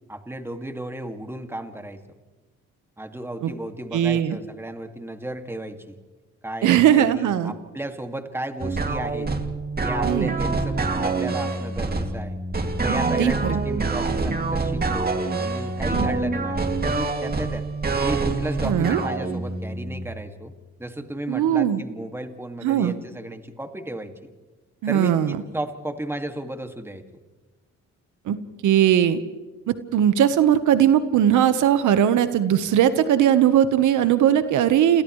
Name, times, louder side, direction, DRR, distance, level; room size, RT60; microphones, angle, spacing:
voice 1, 0.1-2.0 3.0-6.0 6.4-9.3 9.8-12.4 12.8-17.7 18.0-20.5 20.8-24.3 24.9-27.0, right 1 dB, 10° right, 6 dB, 2.2 m, -34 dB
voice 2, 3.9-4.4 6.6-7.5 10.0-10.3 12.9-13.6 15.9-16.1 18.6-19.0 21.3-21.8 22.6-22.9 24.8-25.4 28.3-28.4 28.6-29.2 29.7-35.0, right 10 dB, 80° right, 11 dB, 1.3 m, -19 dB
sound 1, 8.6-20.1, right 3 dB, 30° right, 2.5 m, -26 dB
29.0 x 27.5 x 3.2 m, 1.3 s
cardioid pair, 90°, 30 cm